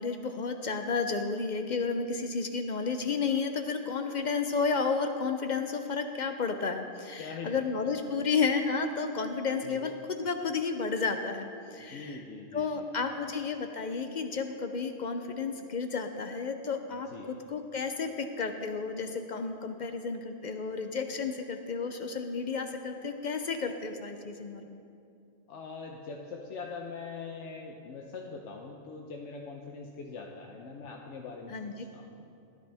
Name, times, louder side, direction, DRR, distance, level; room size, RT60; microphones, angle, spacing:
voice 1, 0.0-12.2 12.5-24.8 31.5-31.7, left 5 dB, 50° left, 6 dB, 0.6 m, -32 dB
voice 2, 7.2-7.9 9.6-9.9 11.8-13.1 16.9-17.3 25.5-32.2, left 4 dB, 85° left, 1 dB, 1.1 m, -43 dB
13.0 x 10.5 x 3.4 m, 2.6 s
omnidirectional pair, 1.2 m